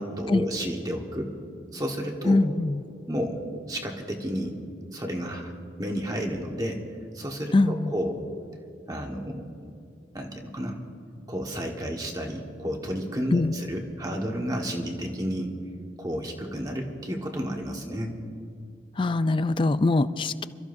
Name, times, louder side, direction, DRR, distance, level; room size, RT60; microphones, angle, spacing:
voice 1, 0.0-1.3 1.7-2.4 3.1-3.4 3.7-4.6 4.9-5.5 5.8-6.8 7.1-8.2 8.9-9.5 10.1-10.8 11.3-15.5 16.0-18.2, equal, 20° right, 1 dB, 1.5 m, -31 dB
voice 2, 2.3-2.8 7.5-7.9 13.3-13.6 19.0-20.5, left 2 dB, 30° left, 14 dB, 0.4 m, -23 dB
27.0 x 14.0 x 2.7 m, 2.4 s
head